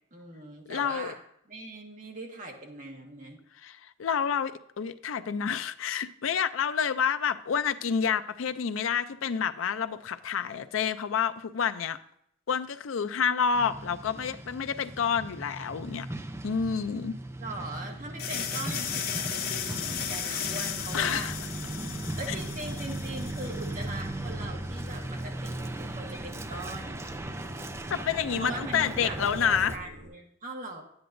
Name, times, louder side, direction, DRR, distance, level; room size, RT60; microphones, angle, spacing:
voice 1, 0.1-1.2 1.5-3.4 17.4-21.3 22.2-27.0 28.4-30.8, right 2 dB, 40° right, 1 dB, 1.4 m, -41 dB
voice 2, 0.7-1.1 3.6-12.0 12.5-16.1 16.4-17.2 20.9-21.3 27.9-29.7, left 7 dB, 90° left, 12 dB, 0.5 m, -29 dB
Truck, 13.5-29.8, right 1 dB, 15° right, 0.4 m, -38 dB
sound 1, 18.2-23.9, left 7 dB, 50° left, 0.7 m, -35 dB
sound 2, 20.7-30.1, equal, 65° right, 4.2 m, -48 dB
11.0 x 9.5 x 2.6 m, 0.74 s
head